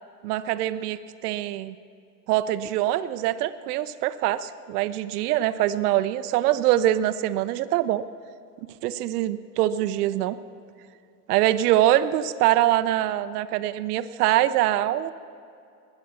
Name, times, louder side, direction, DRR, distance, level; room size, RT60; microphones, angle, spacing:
voice 1, 0.2-1.8 2.3-8.0 8.8-10.4 11.3-15.1, right 13 dB, 85° right, 11 dB, 0.8 m, -24 dB
20.5 x 10.0 x 6.8 m, 2.5 s
supercardioid pair, 130°, 45 cm